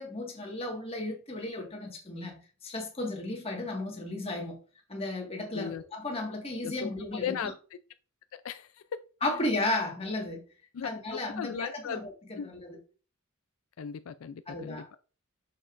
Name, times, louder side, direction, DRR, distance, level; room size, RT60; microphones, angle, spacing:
voice 1, 0.0-4.6 4.9-7.5 9.2-10.4 10.8-12.8 14.5-14.9, left 2 dB, 30° left, 1.7 m, -34 dB
voice 2, 10.7-12.0 12.4-12.5 13.8-15.0, left 7 dB, 75° left, 0.4 m, -36 dB
6.8 x 6.6 x 2.5 m
head